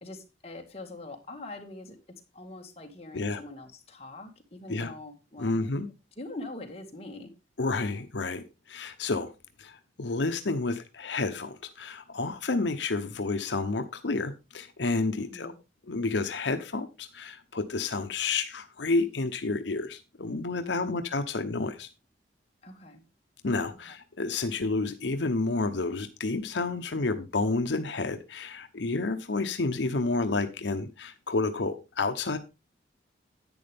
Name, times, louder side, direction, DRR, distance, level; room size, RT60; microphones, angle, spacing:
voice 1, 0.0-2.0 2.3-5.7 6.1-7.3 15.2-15.5 20.6-21.0 22.6-23.0 23.8-24.0, left 2 dB, 35° left, 2.0 m, -43 dB
voice 2, 5.4-5.9 7.6-9.3 9.6-15.5 15.9-21.9 23.4-32.4, left 3 dB, 80° left, 0.8 m, -30 dB
10.5 x 8.7 x 3.5 m
head